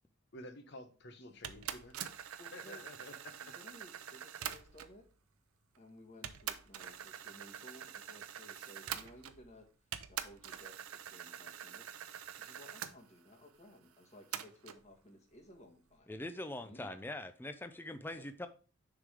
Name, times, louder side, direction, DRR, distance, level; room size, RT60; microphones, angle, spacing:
voice 1, 0.3-2.0 2.5-3.5, left 1 dB, 55° left, 0.9 m, -51 dB
sound 1, 1.4-5.0 5.7-5.8 6.2-9.5 9.9-12.9 14.3-14.8, right 9 dB, 90° right, 0.5 m, -45 dB
voice 2, 2.4-2.9 3.4-5.1 5.8-9.7 10.1-12.0 12.4-16.1 16.6-16.9 18.1-18.3, left 1 dB, 30° left, 1.4 m, -57 dB
voice 3, 16.1-18.5, left 1 dB, 10° left, 0.4 m, -43 dB
6.5 x 3.7 x 4.8 m
head